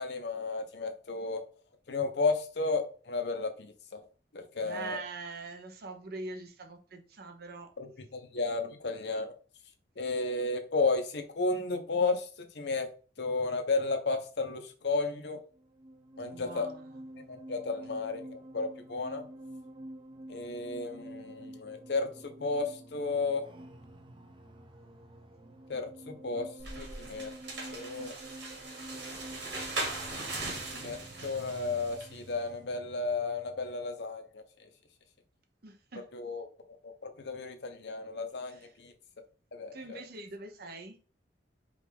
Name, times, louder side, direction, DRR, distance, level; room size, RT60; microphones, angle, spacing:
voice 1, 0.0-1.4 1.9-4.0 4.3-5.0 7.8-9.3 10.0-12.9 13.2-15.4 16.2-16.7 17.3-19.2 20.3-23.5 25.7-26.5 26.8-27.3 27.7-28.1 30.7-34.7 36.1-36.5 36.8-38.9 39.5-40.0, left 3 dB, 65° left, 0.7 m, -33 dB
voice 2, 4.6-7.7 16.3-17.0 35.6-36.1 38.4-38.7 39.7-41.0, right 3 dB, 60° right, 0.7 m, -43 dB
sound 1, 15.5-34.0, right 1 dB, 25° right, 0.5 m, -49 dB
sound 2, 26.6-32.2, right 2 dB, 90° right, 1.8 m, -39 dB
4.9 x 2.4 x 3.4 m
head